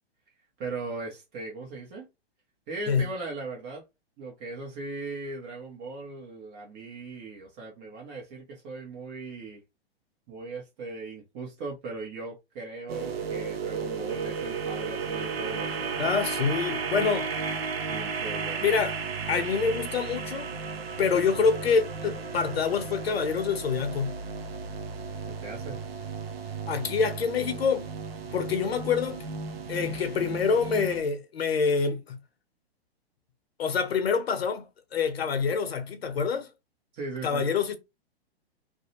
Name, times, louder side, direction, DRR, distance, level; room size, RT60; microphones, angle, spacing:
voice 1, 0.6-2.1 2.7-3.8 4.2-9.6 10.3-16.1 17.9-18.8 25.4-25.8 36.9-37.5, right 3 dB, 35° right, 0.9 m, -38 dB
sound 1, 12.9-31.0, right 5 dB, 70° right, 0.6 m, -34 dB
voice 2, 16.0-17.3 18.6-19.0 19.3-20.5 21.0-24.2 26.7-27.9 28.3-29.3 29.7-32.2 33.6-34.7 34.9-36.5 37.2-37.8, left 5 dB, 75° left, 0.7 m, -26 dB
2.6 x 2.1 x 2.8 m
figure-of-eight pair, 115°, 31 cm